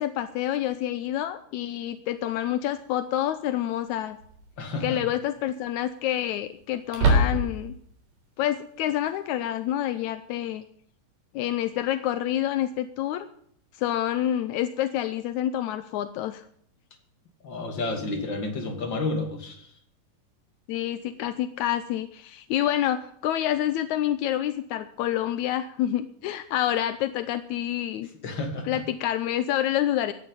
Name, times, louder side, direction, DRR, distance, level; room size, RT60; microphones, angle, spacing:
voice 1, 0.0-4.2 4.8-7.7 8.4-10.6 11.3-13.3 13.7-16.5 20.7-28.1 28.7-30.1, left 12 dB, 80° left, 12 dB, 1.8 m, -28 dB
sound 1, 2.3-2.4 4.2-4.6 5.0-5.1 6.9-7.8, right 1 dB, 70° right, 5.3 m, -23 dB
voice 2, 4.6-5.0 17.4-19.7 28.2-28.8, left 2 dB, 35° left, 4 dB, 3.0 m, -31 dB
16.5 x 10.5 x 5.6 m, 0.66 s
omnidirectional pair, 4.0 m